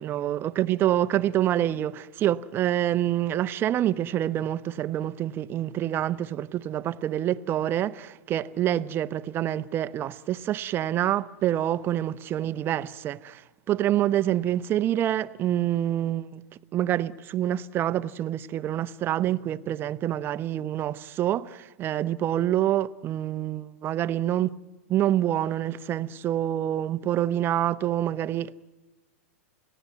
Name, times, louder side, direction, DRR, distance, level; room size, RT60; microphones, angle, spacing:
voice 1, 0.0-16.4 16.7-24.5 24.9-28.6, right 12 dB, 30° right, 0.8 m, -27 dB
29.0 x 17.0 x 9.4 m
hypercardioid pair, 115°, 7 cm